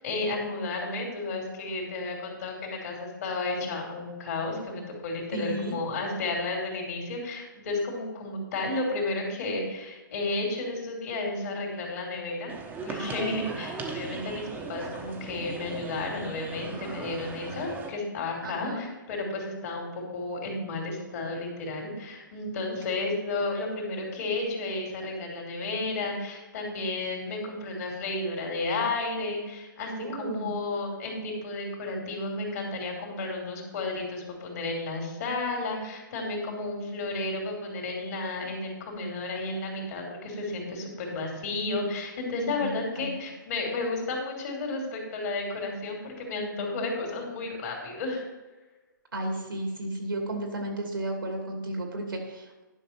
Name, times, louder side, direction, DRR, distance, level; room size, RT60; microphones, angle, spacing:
voice 1, 0.0-12.5 12.8-48.2, left 2 dB, 50° left, 1 dB, 3.0 m, -32 dB
voice 2, 5.3-5.7 18.4-18.8 30.0-30.5 42.6-43.1 49.1-52.6, right 1 dB, 85° right, 2 dB, 2.6 m, -33 dB
sound 1, 12.5-17.9, right 4 dB, 15° right, 1.1 m, -38 dB
11.0 x 6.0 x 4.4 m, 1.2 s
figure-of-eight pair, 130°, 11 cm